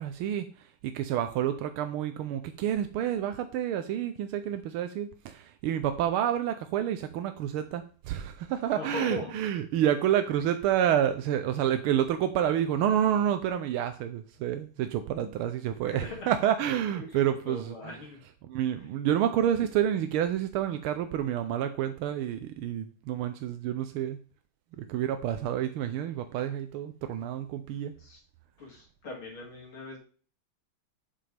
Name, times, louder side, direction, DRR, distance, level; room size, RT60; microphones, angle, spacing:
voice 1, 0.0-18.0 18.4-24.2 24.8-27.9, right 10 dB, 85° right, 9 dB, 1.5 m, -29 dB
voice 2, 8.7-9.3 15.2-15.3 15.8-16.3 16.9-18.2 28.0-28.2 28.6-30.0, left 2 dB, 75° left, -1 dB, 3.5 m, -40 dB
7.9 x 7.5 x 3.4 m, 0.40 s
omnidirectional pair, 2.3 m